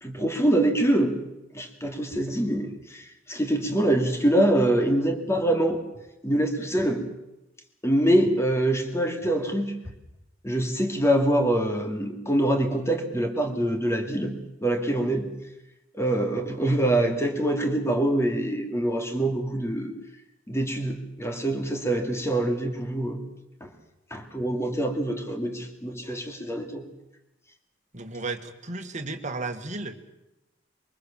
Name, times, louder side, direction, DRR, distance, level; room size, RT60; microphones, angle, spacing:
voice 1, 0.0-1.2 1.5-5.8 6.2-7.0 7.8-9.8 10.4-15.3 15.9-19.9 20.5-23.2 23.6-23.7 24.1-26.9, right 1 dB, 15° left, 4 dB, 2.7 m, -25 dB
voice 2, 27.9-30.0, right 3 dB, 40° right, 5 dB, 2.0 m, -34 dB
23.0 x 23.0 x 7.3 m, 0.92 s
head